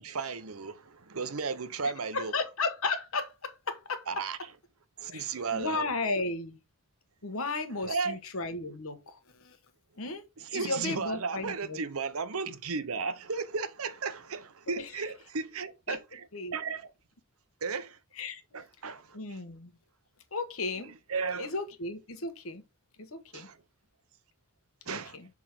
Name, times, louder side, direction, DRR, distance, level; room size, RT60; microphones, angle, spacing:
voice 1, 0.0-2.3 4.1-4.4 5.0-5.9 7.8-8.2 10.4-16.3 16.5-16.9 17.6-18.0 18.5-19.4 21.1-21.5 23.3-23.6 24.9-25.2, right 5 dB, 75° right, 0.8 m, -34 dB
voice 2, 2.1-4.0 5.1-6.6 7.2-9.6 10.0-10.2 10.5-11.8 14.8-14.9 15.9-16.0 16.3-16.6 18.2-18.6 19.1-19.8 20.3-20.9 21.4-22.6 23.0-23.5 24.9-25.3, left 3 dB, 70° left, 1.2 m, -34 dB
6.1 x 3.6 x 6.0 m
head